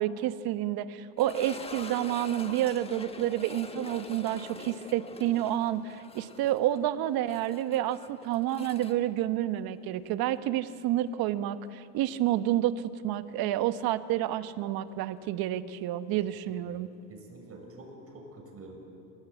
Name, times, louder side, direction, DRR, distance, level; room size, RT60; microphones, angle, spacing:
voice 1, 0.0-16.9, right 12 dB, 50° right, 11 dB, 1.3 m, -29 dB
sound 1, 1.2-10.1 10.3-10.4 11.1-11.2 13.8-13.9, left 3 dB, 15° left, 1.4 m, -45 dB
voice 2, 16.6-18.7, right 2 dB, 30° right, 2 dB, 7.1 m, -48 dB
27.0 x 18.0 x 8.5 m, 2.6 s
supercardioid pair, 110°, 45 cm